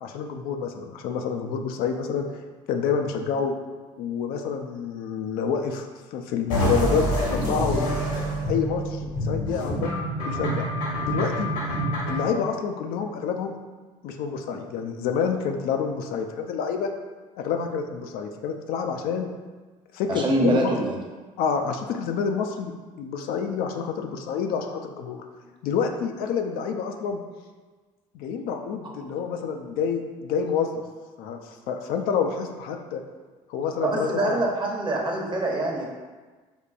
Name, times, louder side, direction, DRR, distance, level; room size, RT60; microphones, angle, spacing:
voice 1, 0.0-2.3 2.7-3.5 4.0-7.9 8.4-10.7 11.0-11.5 12.1-13.5 14.0-16.9 17.4-19.3 19.9-20.7 21.4-25.2 25.6-27.2 28.1-30.7 31.2-33.0 33.5-34.4, left 6 dB, 65° left, 4 dB, 0.4 m, -28 dB
sound 1, 6.5-12.3, equal, 80° left, 1.2 m, -26 dB
voice 2, 20.1-21.0 33.8-35.9, right 1 dB, 30° right, -1 dB, 0.9 m, -24 dB
5.2 x 2.2 x 2.4 m, 1.3 s
hypercardioid pair, 60°, 17 cm